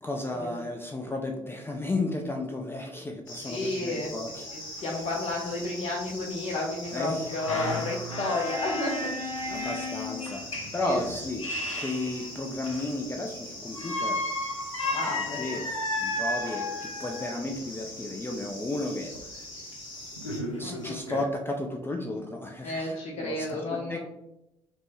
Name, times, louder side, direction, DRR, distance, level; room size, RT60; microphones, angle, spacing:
voice 1, 0.0-4.5 6.9-7.3 9.5-11.5 11.8-14.2 15.3-15.7 16.0-19.5 20.6-24.0, left 2 dB, 15° left, 2 dB, 0.5 m, -33 dB
sound 1, 3.3-20.4, left 1 dB, 60° left, 1.4 m, -42 dB
voice 2, 3.4-4.1 4.5-9.2 9.4-9.9 10.8-11.0 14.8-15.6 20.6-20.9 22.6-24.0, left 2 dB, 40° left, -2 dB, 0.7 m, -32 dB
sound 2, 4.5-4.6 4.8-4.9 5.5-5.6 6.8-13.0 13.7-17.4 19.1-19.2 19.7-19.8 20.2-21.2, left 1 dB, 85° left, 0.4 m, -33 dB
5.1 x 2.1 x 3.0 m, 0.86 s
figure-of-eight pair, 50°, 16 cm